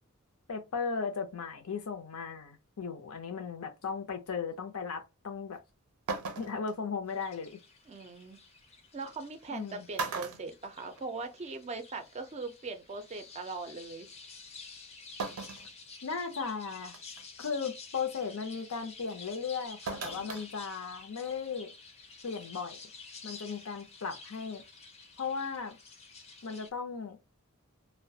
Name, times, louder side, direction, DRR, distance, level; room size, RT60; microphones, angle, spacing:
voice 1, 0.5-5.6 6.4-7.6 9.5-9.8 16.0-17.0 17.4-21.7 22.2-22.8 23.2-24.6 25.2-25.8 26.4-27.2, left 5 dB, 80° left, 0.5 m, -36 dB
sound 1, 5.5-5.6 6.1-6.7 8.3-8.4 9.4-9.6 9.9-11.3 11.7-11.8 13.0-13.1 15.2-15.7 16.2-16.3 16.9-17.2 19.9-20.5 20.8-20.9, right 4 dB, 90° right, 0.5 m, -37 dB
sound 2, 7.1-26.7, left 4 dB, 30° left, 0.5 m, -51 dB
voice 2, 7.9-8.4 8.9-14.1, right 3 dB, 30° right, 0.4 m, -40 dB
2.3 x 2.1 x 2.7 m
head